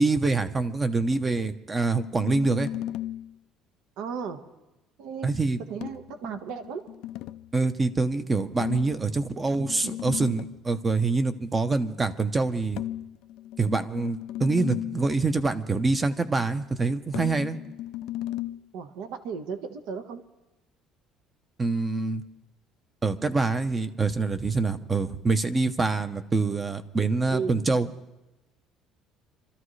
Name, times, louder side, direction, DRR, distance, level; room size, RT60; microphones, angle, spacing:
voice 1, 0.0-2.7 5.2-5.6 7.5-12.8 13.6-17.6 21.6-22.2 23.0-27.9, right 3 dB, 15° right, 11 dB, 0.7 m, -25 dB
sound 1, 1.9-3.3 5.8-7.5 8.6-10.6 12.8-15.2 17.1-18.6, left 13 dB, 65° left, 0.4 m, -35 dB
voice 2, 4.0-4.4 5.0-5.3 5.7-6.8 18.7-20.2 27.3-27.6, right 6 dB, 70° right, 8 dB, 1.3 m, -34 dB
26.5 x 13.5 x 3.2 m, 1.0 s
cardioid pair, 170°, 0 cm